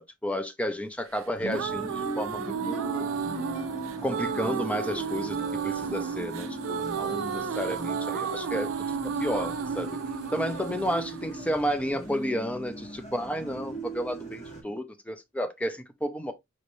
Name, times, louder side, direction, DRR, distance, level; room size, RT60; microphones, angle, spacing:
voice 1, 0.0-3.1 4.0-8.7 9.2-10.0 10.3-16.3, equal, 5° left, 0.5 m, -32 dB
sound 1, 1.2-12.2, right 6 dB, 85° right, 0.4 m, -33 dB
sound 2, 1.3-14.6, right 1 dB, 35° left, 1.3 m, -40 dB
5.2 x 3.2 x 2.7 m
head